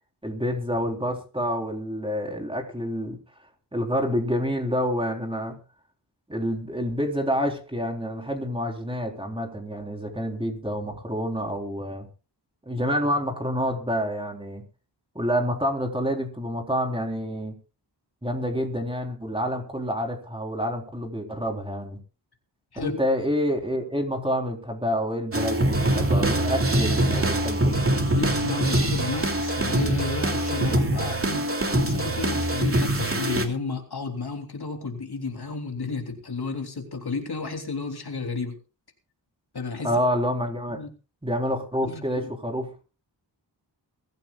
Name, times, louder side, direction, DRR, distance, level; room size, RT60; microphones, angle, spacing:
voice 1, 0.2-3.2 3.7-5.6 6.3-12.1 12.7-14.6 15.1-17.6 18.2-22.0 22.8-27.7 39.8-40.8 41.2-42.8, equal, 10° right, 2 dB, 4.0 m, -28 dB
sound 1, 25.3-33.5, right 1 dB, 30° right, 2.8 m, -24 dB
voice 2, 28.1-31.4 31.7-38.6 39.5-39.9 40.7-40.9 41.8-42.2, left 4 dB, 60° left, 4 dB, 3.3 m, -32 dB
22.5 x 15.0 x 2.4 m, 0.34 s
wide cardioid pair, 125°, 43 cm